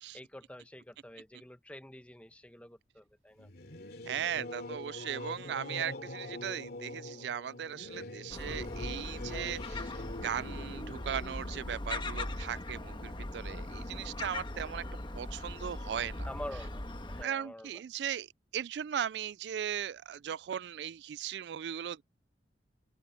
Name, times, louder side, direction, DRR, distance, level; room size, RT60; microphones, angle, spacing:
voice 1, 0.1-3.5 8.3-8.8 16.2-17.8, left 1 dB, 10° left, 1.1 m, -47 dB
Singing / Musical instrument, 3.4-13.5, left 2 dB, 60° left, 2.8 m, -44 dB
voice 2, 4.1-14.8 15.1-16.3 17.2-22.0, right 9 dB, 70° right, 0.3 m, -38 dB
Gull seagull, 8.3-17.2, left 1 dB, 30° left, 1.4 m, -40 dB
head